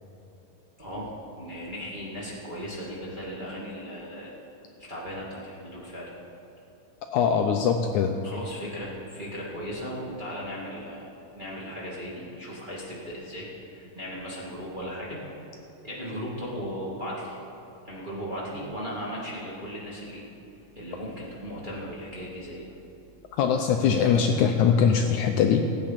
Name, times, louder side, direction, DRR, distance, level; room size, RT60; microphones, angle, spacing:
voice 1, 0.8-4.3 4.9-6.1 8.2-15.2 15.8-17.4 17.8-20.2 20.7-22.6, equal, 20° right, -6 dB, 1.6 m, -37 dB
voice 2, 7.1-8.1 23.4-25.7, left 7 dB, 75° left, 4 dB, 1.9 m, -22 dB
17.0 x 8.8 x 5.8 m, 2.8 s
omnidirectional pair, 3.9 m